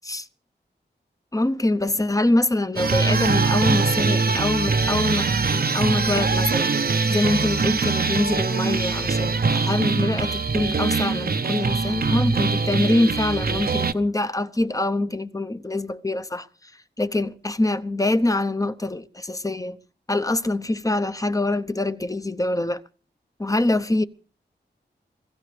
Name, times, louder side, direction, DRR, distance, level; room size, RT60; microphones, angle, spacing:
voice 1, 1.3-6.7 7.1-16.5 17.0-19.8 20.1-22.8 23.4-24.0, left 2 dB, 20° left, 0.8 m, -24 dB
sound 1, 2.8-13.9, right 4 dB, 55° right, 0.8 m, -22 dB
25.5 x 15.5 x 3.3 m
wide cardioid pair, 75°, 19 cm